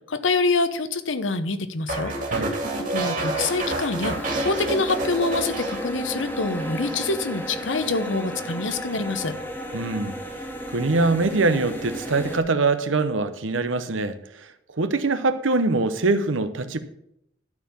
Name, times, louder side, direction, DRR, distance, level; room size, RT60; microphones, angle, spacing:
voice 1, 0.1-2.1 2.9-9.3, left 3 dB, 80° left, 0.9 m, -26 dB
sound 1, 1.9-6.3 6.6-7.0, right 2 dB, 45° right, 2.5 m, -29 dB
sound 2, 4.1-12.4, equal, 10° left, 0.9 m, -33 dB
voice 2, 9.7-10.2 10.7-14.2 14.8-16.8, right 3 dB, 85° right, 0.9 m, -23 dB
12.0 x 4.6 x 7.0 m
head